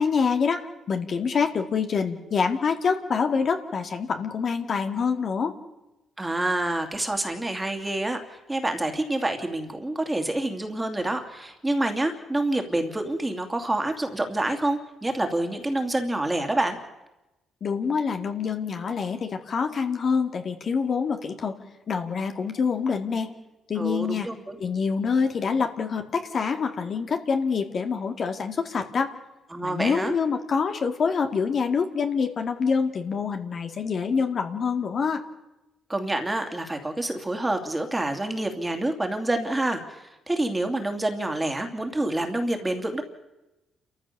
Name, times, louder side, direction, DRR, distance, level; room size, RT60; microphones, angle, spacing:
voice 1, 0.0-5.5 17.6-21.5 21.9-23.3 23.7-24.3 24.6-29.1 29.6-35.2, left 5 dB, 50° left, 5 dB, 2.0 m, -26 dB
voice 2, 6.2-16.8 23.8-24.6 29.5-30.1 35.9-43.0, right 1 dB, 15° right, 5 dB, 2.7 m, -27 dB
28.5 x 14.0 x 6.9 m, 1.0 s
cardioid pair, 90°, 0 cm